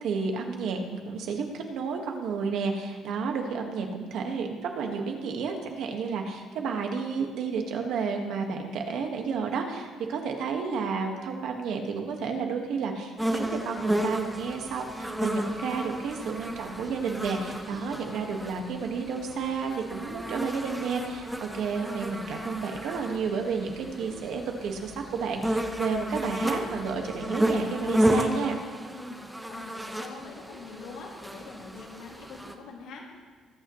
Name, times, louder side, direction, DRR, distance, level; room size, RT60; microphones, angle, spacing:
voice 1, 0.0-28.6, right 5 dB, 70° right, 3 dB, 1.7 m, -31 dB
sound 1, 13.2-32.5, right 1 dB, 5° right, 0.9 m, -32 dB
voice 2, 28.9-33.0, left 3 dB, 85° left, -3 dB, 2.5 m, -44 dB
22.5 x 9.0 x 3.2 m, 1.5 s
cardioid pair, 145°, 0 cm